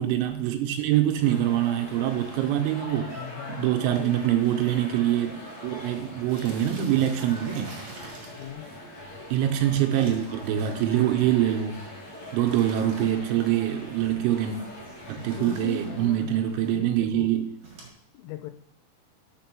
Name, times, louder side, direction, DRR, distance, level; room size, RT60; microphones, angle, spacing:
voice 1, 0.0-3.2 3.5-7.8 9.3-11.8 12.3-14.6 15.1-17.5, right 11 dB, 80° right, 3.0 m, -25 dB
sound 1, 1.0-1.2 1.9-2.0 2.2-2.3 2.5-2.8 3.2-3.3 3.6-3.7 4.5-4.6 4.8-5.0 5.3-5.4 6.3-8.5 9.9-11.1 12.4-13.5 15.0-16.1 17.6-17.9, right 3 dB, 55° right, 2.0 m, -46 dB
sound 2, 1.2-16.8, left 1 dB, 50° left, 1.4 m, -43 dB
voice 2, 2.6-4.2 8.2-8.7 15.1-16.3 16.7-17.3 18.1-18.5, left 11 dB, 85° left, 3.2 m, -40 dB
6.1 x 5.3 x 5.9 m
omnidirectional pair, 5.6 m